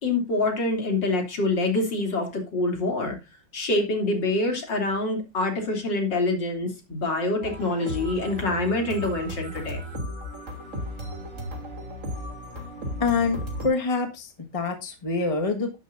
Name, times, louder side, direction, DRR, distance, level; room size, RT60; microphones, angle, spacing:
voice 1, 0.0-3.2 3.5-9.8, left 2 dB, 75° left, 3 dB, 3.7 m, -26 dB
sound 1, 7.4-13.7, equal, 40° right, 3.3 m, -35 dB
voice 2, 13.0-15.8, left 4 dB, 20° left, 4 dB, 1.6 m, -26 dB
11.5 x 10.5 x 2.6 m, 0.26 s
omnidirectional pair, 2.0 m